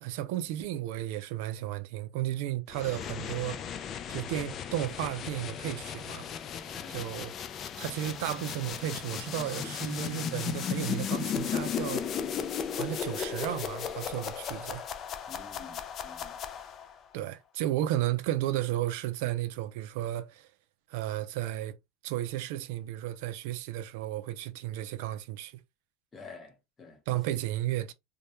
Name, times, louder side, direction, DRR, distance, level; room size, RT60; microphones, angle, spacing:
voice 1, 0.0-3.8 4.1-6.3 6.9-7.3 7.8-12.2 12.7-14.9 17.1-20.5 20.9-21.7 22.0-25.5 27.1-27.9, right 13 dB, 70° right, 0.3 m, -33 dB
sound 1, 2.7-17.0, left 8 dB, 35° left, 0.3 m, -36 dB
voice 2, 6.7-7.0 15.3-16.4 26.1-27.0, left 4 dB, 20° left, 0.9 m, -49 dB
2.1 x 2.1 x 2.9 m
supercardioid pair, 125°, 0 cm